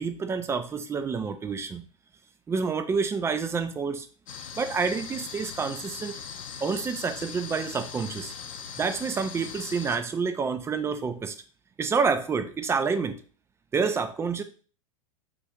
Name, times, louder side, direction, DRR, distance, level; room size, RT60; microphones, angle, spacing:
voice 1, 0.0-1.9 2.5-4.1 4.6-6.2 6.6-8.3 8.8-11.4 11.8-13.2 13.7-14.4, right 5 dB, 15° right, 9 dB, 0.4 m, -28 dB
sound 1, 4.3-10.0, left 6 dB, 85° left, 0.5 m, -40 dB
3.1 x 2.4 x 3.5 m, 0.40 s
hypercardioid pair, 100°, 17 cm